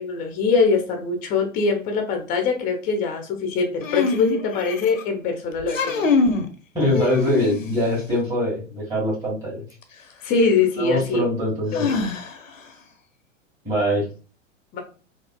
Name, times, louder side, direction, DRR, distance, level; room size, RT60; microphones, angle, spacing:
voice 1, 0.0-6.1 10.2-11.2 11.7-12.0 14.7-14.8, left 4 dB, 20° left, 4 dB, 0.6 m, -23 dB
sound 1, 3.8-5.0 5.6-6.5 6.9-7.9 9.8-9.9 11.7-12.6, left 4 dB, 80° left, 0.6 m, -24 dB
voice 2, 6.7-9.6 10.8-12.0 13.6-14.1, left 1 dB, 10° right, -6 dB, 1.4 m, -23 dB
4.0 x 2.3 x 2.2 m, 0.36 s
figure-of-eight pair, 100°, 39 cm